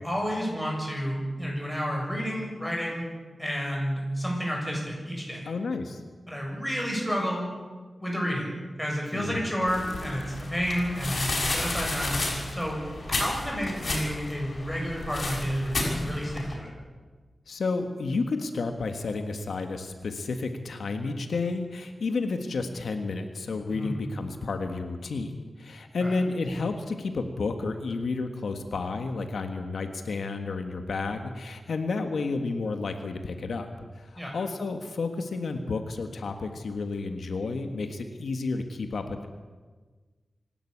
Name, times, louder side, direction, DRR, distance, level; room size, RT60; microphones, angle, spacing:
voice 1, 0.0-3.0 3.4-5.5 6.3-7.5 8.0-12.2 12.5-12.8 13.1-16.7 23.7-24.0 26.0-26.2 34.2-34.3, equal, ahead, -1 dB, 7.5 m, -30 dB
voice 2, 5.5-6.0 9.1-9.4 17.5-33.7 34.0-39.3, left 3 dB, 85° left, 6 dB, 1.6 m, -31 dB
sound 1, 9.7-16.5, left 2 dB, 55° left, 6.1 m, -32 dB
26.0 x 12.0 x 8.7 m, 1.4 s
wide cardioid pair, 100°, 0 cm